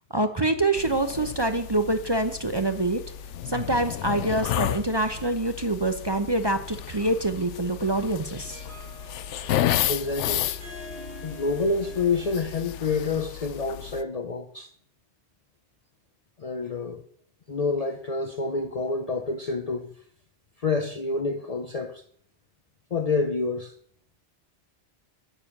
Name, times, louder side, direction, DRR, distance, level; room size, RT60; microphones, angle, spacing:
voice 1, 0.1-3.0 3.4-8.6, right 2 dB, 25° right, 0.7 m, -25 dB
sound 1, 0.8-14.0, left 11 dB, 85° left, 0.9 m, -32 dB
Harp, 8.3-13.2, equal, 70° right, 2.5 m, -46 dB
voice 2, 9.9-10.5 11.2-14.7 16.4-17.0 17.5-19.9 20.6-22.0 22.9-23.8, left 4 dB, 45° left, 0.6 m, -28 dB
9.5 x 6.8 x 7.3 m
omnidirectional pair, 1.2 m